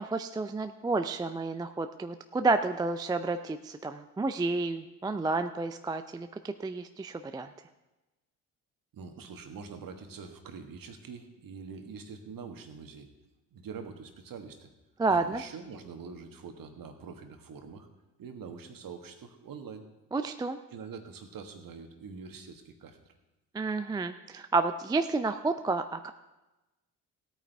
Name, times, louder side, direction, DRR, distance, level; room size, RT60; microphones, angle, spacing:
voice 1, 0.0-7.5 15.0-15.4 20.1-20.6 23.5-26.1, right 3 dB, 10° right, 8 dB, 0.4 m, -30 dB
voice 2, 8.9-13.1 13.5-14.7 15.1-17.9 18.2-19.9 20.7-23.1, right 5 dB, 45° right, 6 dB, 1.6 m, -44 dB
17.0 x 9.0 x 3.4 m, 1.0 s
figure-of-eight pair, 50°, 48 cm